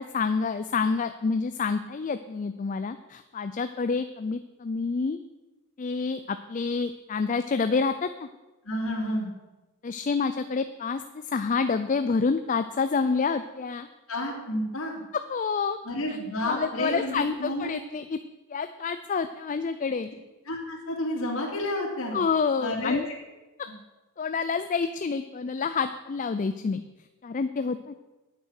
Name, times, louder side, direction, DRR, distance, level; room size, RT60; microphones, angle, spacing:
voice 1, 0.0-5.2 5.8-8.3 9.8-13.9 15.3-15.8 16.1-16.2 16.4-18.2 18.5-20.1 22.1-23.1 24.2-26.8 27.2-27.9, left 5 dB, 35° left, 10 dB, 0.4 m, -28 dB
voice 2, 8.6-9.3 14.1-15.0 15.8-17.7 20.5-22.2 22.6-23.0, left 1 dB, 60° left, -1 dB, 2.7 m, -30 dB
9.3 x 8.9 x 6.4 m, 1.1 s
head